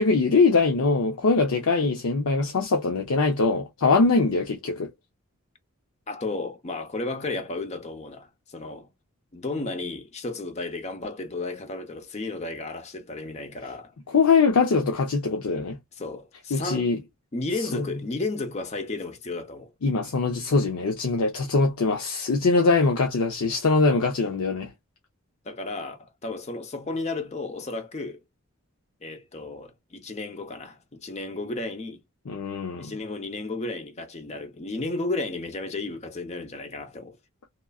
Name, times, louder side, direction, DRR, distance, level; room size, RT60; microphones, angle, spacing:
voice 1, 0.0-4.9 14.1-15.8 16.5-17.0 17.7-17.8 19.8-24.7 32.3-32.9, left 4 dB, 85° left, 0.6 m, -22 dB
voice 2, 6.1-8.9 9.3-13.9 15.9-16.9 17.3-19.7 25.4-28.2 29.0-32.0 32.8-37.2, left 2 dB, 30° left, 0.6 m, -33 dB
3.0 x 2.4 x 2.2 m
head